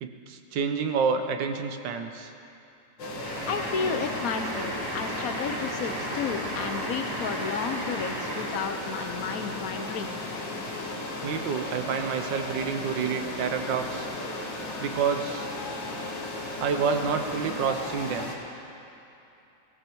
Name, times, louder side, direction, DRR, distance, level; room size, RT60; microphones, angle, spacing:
voice 1, 0.0-2.3 11.2-14.1 14.8-15.5 16.6-18.3, right 6 dB, 75° right, 6 dB, 1.6 m, -28 dB
sound 1, 3.0-18.4, left 2 dB, 75° left, 2.2 m, -35 dB
sound 2, 3.2-8.7, right 1 dB, 60° right, 2.4 m, -35 dB
voice 2, 3.4-10.2, left 6 dB, 55° left, 6 dB, 1.2 m, -32 dB
18.5 x 14.0 x 4.6 m, 2.8 s
omnidirectional pair, 2.0 m